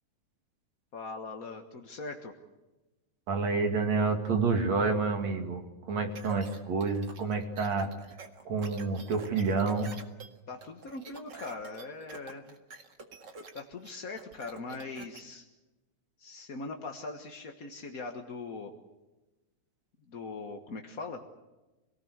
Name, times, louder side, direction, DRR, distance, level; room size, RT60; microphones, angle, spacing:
voice 1, 0.9-2.3 10.5-12.6 13.5-15.4 16.2-18.7 20.1-21.2, left 3 dB, 45° left, 3 dB, 1.1 m, -41 dB
voice 2, 3.3-5.6 5.9-7.9 8.5-9.9, right 4 dB, 60° right, 4 dB, 3.5 m, -28 dB
sound 1, 6.2-15.2, right 4 dB, 40° right, 2.1 m, -48 dB
27.0 x 18.5 x 8.1 m, 1.1 s
omnidirectional pair, 3.6 m